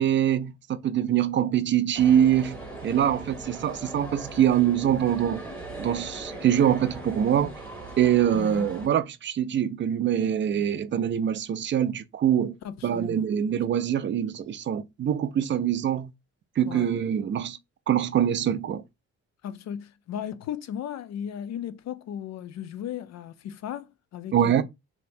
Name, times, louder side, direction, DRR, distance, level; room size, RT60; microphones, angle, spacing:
voice 1, 0.0-5.4 5.8-7.5 8.0-12.6 12.8-16.1 16.6-17.6 17.9-18.8 24.3-24.6, right 10 dB, 40° right, 0.4 m, -24 dB
sound 1, 1.9-8.9, right 2 dB, 5° left, 1.7 m, -39 dB
voice 2, 8.3-8.7 12.6-13.3 16.7-16.9 19.4-24.6, left 9 dB, 60° left, 0.5 m, -36 dB
3.3 x 2.8 x 2.6 m
cardioid pair, 90°, 30 cm